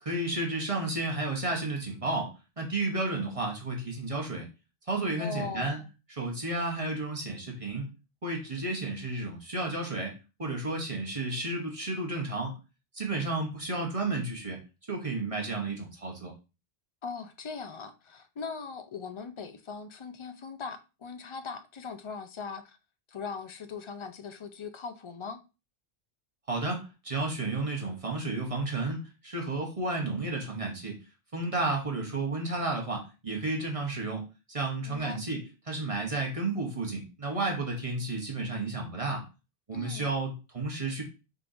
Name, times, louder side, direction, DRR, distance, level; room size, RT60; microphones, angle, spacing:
voice 1, 0.0-4.5 4.9-5.8 6.2-7.9 8.2-10.1 10.4-12.5 12.9-14.6 14.9-16.3 26.5-31.0 31.3-34.2 34.5-39.2 39.7-41.0, right 2 dB, 35° right, 1.0 m, -32 dB
voice 2, 5.2-5.9 17.0-22.8 23.1-25.4 34.9-35.2 39.7-40.1, left 5 dB, 45° left, 0.4 m, -40 dB
4.4 x 3.9 x 2.6 m
omnidirectional pair, 1.0 m